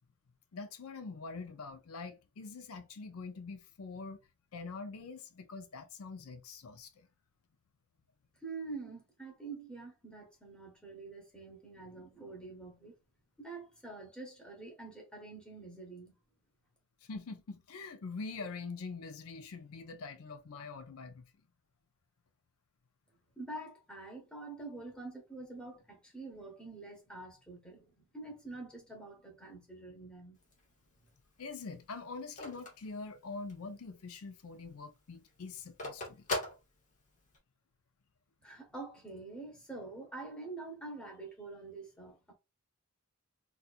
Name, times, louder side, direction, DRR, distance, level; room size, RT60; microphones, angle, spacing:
voice 1, 0.5-4.2 4.5-7.1 17.1-21.3 31.4-36.3, left 4 dB, 85° left, 0.5 m, -44 dB
voice 2, 8.4-12.9 13.4-16.1 23.4-30.4 38.4-42.3, right 3 dB, 5° left, 1.0 m, -46 dB
Telephone, 30.4-33.8 34.2-34.3 34.5-37.4, left 2 dB, 35° left, 1.0 m, -41 dB
4.2 x 2.4 x 2.4 m
head